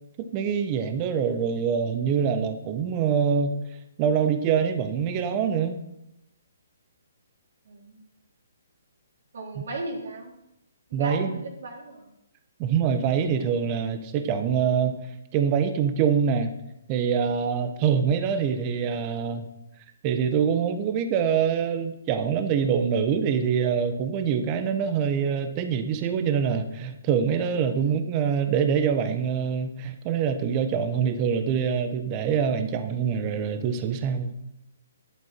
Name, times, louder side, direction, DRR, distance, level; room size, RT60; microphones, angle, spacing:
voice 1, 0.2-3.6 4.0-5.8 10.9-11.3 12.6-15.0 15.3-16.5 16.9-19.5 20.0-34.3, right 7 dB, 30° right, 8 dB, 1.2 m, -25 dB
voice 2, 7.6-8.0 9.3-10.3 10.9-12.1 17.9-18.1 27.8-28.0, right 2 dB, 65° right, 0 dB, 3.8 m, -37 dB
12.5 x 11.0 x 4.5 m, 0.87 s
hypercardioid pair, 145°, 0 cm